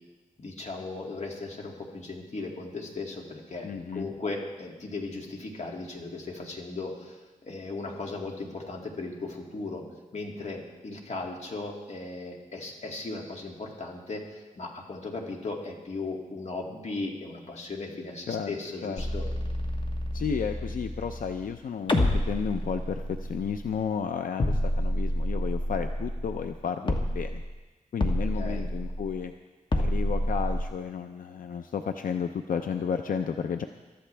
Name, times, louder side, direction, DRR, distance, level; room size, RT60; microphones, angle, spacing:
voice 1, 0.4-9.8 10.1-19.2 26.8-27.0 28.3-28.7, left 3 dB, 55° left, 0 dB, 2.4 m, -37 dB
voice 2, 3.6-4.1 18.3-18.5 18.8-19.0 20.1-27.4 27.9-29.3 29.7-33.7, left 7 dB, 90° left, 7 dB, 0.6 m, -32 dB
sound 1, 19.0-21.6 21.9-24.0 24.4-26.6 26.9-27.6 28.0-29.2 29.7-30.7, left 1 dB, 35° left, 1.5 m, -29 dB
22.5 x 13.0 x 3.4 m, 1.2 s
wide cardioid pair, 115°, 14 cm